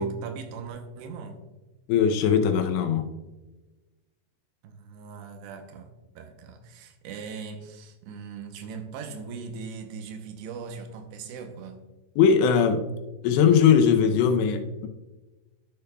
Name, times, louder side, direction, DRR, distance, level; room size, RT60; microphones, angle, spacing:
voice 1, 0.0-1.4 4.6-11.8, right 5 dB, 85° right, 5 dB, 3.0 m, -40 dB
voice 2, 1.9-3.0 12.2-12.8 13.2-14.9, left 7 dB, 90° left, 7 dB, 3.0 m, -20 dB
12.5 x 6.8 x 2.3 m, 1.1 s
omnidirectional pair, 4.9 m